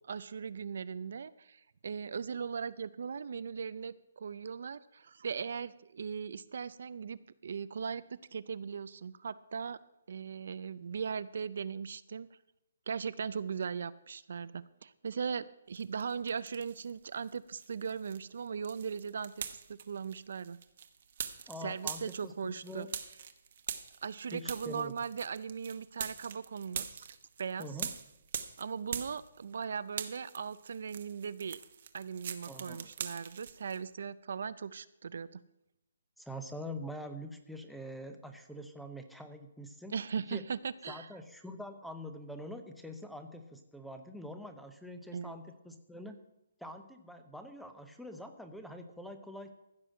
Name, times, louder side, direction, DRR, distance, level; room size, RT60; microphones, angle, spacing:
voice 1, 0.1-9.8 10.1-12.3 12.9-20.6 21.6-22.9 24.0-27.9 28.6-31.6 31.9-35.4 39.9-41.1 45.1-45.3, right 6 dB, 65° right, 15 dB, 0.5 m, -39 dB
sound 1, 15.8-16.9 17.2-29.6 29.9-33.8, right 8 dB, 45° right, 1.0 m, -43 dB
voice 2, 21.5-22.9 24.3-24.9 27.6-27.9 32.5-32.9 36.2-40.0 40.3-40.4 40.9-46.2 46.6-49.5, equal, ahead, 7 dB, 0.7 m, -45 dB
15.0 x 6.1 x 6.5 m, 0.87 s
hypercardioid pair, 165°, 0 cm